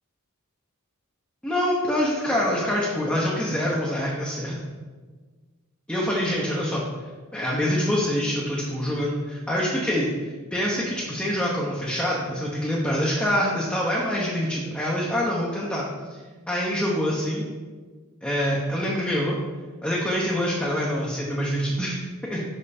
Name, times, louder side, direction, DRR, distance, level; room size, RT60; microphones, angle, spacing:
voice 1, 1.4-4.6 5.9-6.8 7.3-15.8 16.1-16.2 16.5-17.5 18.2-19.4 19.8-22.0 22.3-22.4, equal, 5° left, -5 dB, 0.8 m, -25 dB
6.0 x 5.3 x 4.2 m, 1.4 s
head